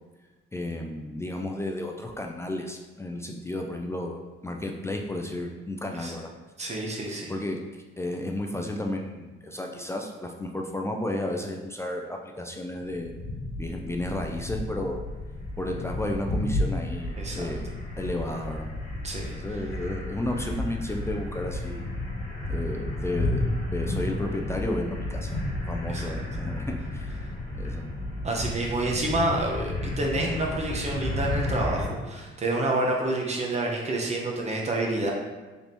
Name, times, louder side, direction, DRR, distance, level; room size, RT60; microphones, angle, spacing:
voice 1, 0.5-6.3 7.3-13.1 13.6-15.0 15.6-18.7 19.3-21.9 22.5-25.4 25.7-27.1 27.5-27.9, left 1 dB, 15° left, 2 dB, 0.3 m, -33 dB
voice 2, 6.6-7.3 17.2-17.5 19.0-19.4 25.9-26.0 28.2-35.1, right 2 dB, 35° right, 0 dB, 0.7 m, -28 dB
sound 1, 12.8-31.9, left 1 dB, 40° left, 1.4 m, -32 dB
3.4 x 2.9 x 4.1 m, 1.2 s
cardioid pair, 90°, 20 cm